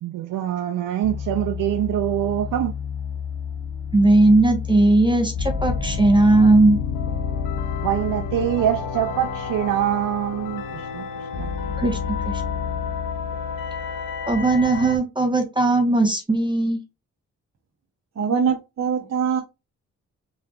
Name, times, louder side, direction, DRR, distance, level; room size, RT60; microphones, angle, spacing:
voice 1, 0.0-2.7 7.8-11.5, right 11 dB, 75° right, 0.5 m, -24 dB
sound 1, 1.0-6.2 6.8-6.9, left 7 dB, 40° left, 0.6 m, -31 dB
voice 2, 3.9-6.8 11.8-12.0 12.2-12.4 14.3-16.8, right 2 dB, 15° right, 1.2 m, -18 dB
sound 2, 5.3-15.0, left 6 dB, 90° left, 0.8 m, -29 dB
voice 3, 18.2-19.4, right 7 dB, 55° right, 0.9 m, -23 dB
3.9 x 3.2 x 2.4 m
cardioid pair, 55°, 32 cm